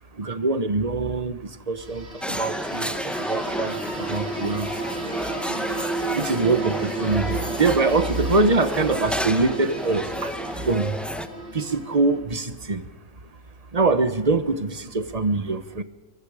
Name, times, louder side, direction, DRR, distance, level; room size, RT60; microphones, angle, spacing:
voice 1, 0.2-4.7 6.2-10.4 10.6-11.0 11.5-12.9 13.7-15.8, right 3 dB, 30° right, 11 dB, 1.3 m, -24 dB
sound 1, 1.8-12.2, right 3 dB, 60° right, 4.4 m, -33 dB
sound 2, 2.2-11.3, equal, ahead, 0.8 m, -31 dB
24.5 x 23.0 x 5.1 m, 1.1 s
omnidirectional pair, 1.4 m